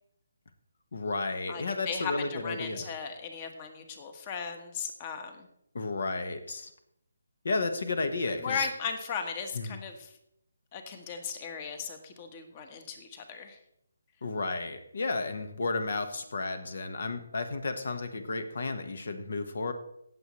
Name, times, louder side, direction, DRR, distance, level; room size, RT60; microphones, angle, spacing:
voice 1, 0.9-2.9 5.7-6.7 7.4-8.7 9.5-9.8 14.2-19.7, left 3 dB, 65° left, 9 dB, 1.4 m, -32 dB
voice 2, 1.5-5.5 8.4-10.1 10.7-13.6, left 6 dB, 30° left, 7 dB, 1.3 m, -37 dB
17.5 x 7.2 x 3.2 m, 0.76 s
figure-of-eight pair, 155°, 0 cm